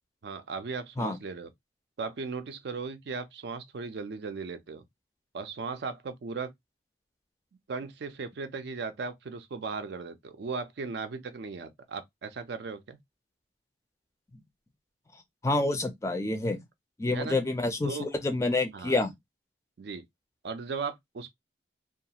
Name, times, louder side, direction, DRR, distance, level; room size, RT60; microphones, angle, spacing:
voice 1, 0.2-1.5 2.0-4.8 5.3-6.5 7.7-13.0 17.1-17.4 17.8-18.1 18.7-19.0 19.8-20.0 20.4-21.3, right 4 dB, 65° right, 0.4 m, -37 dB
voice 2, 15.4-16.6 17.0-19.1, left 2 dB, 15° left, 0.4 m, -28 dB
2.3 x 2.3 x 2.8 m
head